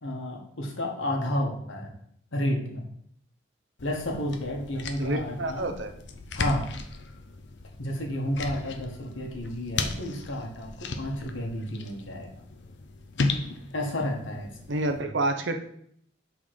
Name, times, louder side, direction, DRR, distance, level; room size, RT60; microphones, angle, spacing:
voice 1, 0.0-1.9 2.3-2.9 3.8-5.7 6.3-6.7 7.8-12.3 13.5-14.8, left 1 dB, 85° left, 1 dB, 1.4 m, -31 dB
sound 1, 3.8-15.0, left 3 dB, 70° left, 0.6 m, -36 dB
voice 2, 5.0-5.9 14.7-15.6, right 2 dB, 75° right, 7 dB, 0.8 m, -28 dB
6.0 x 4.0 x 4.7 m, 0.67 s
head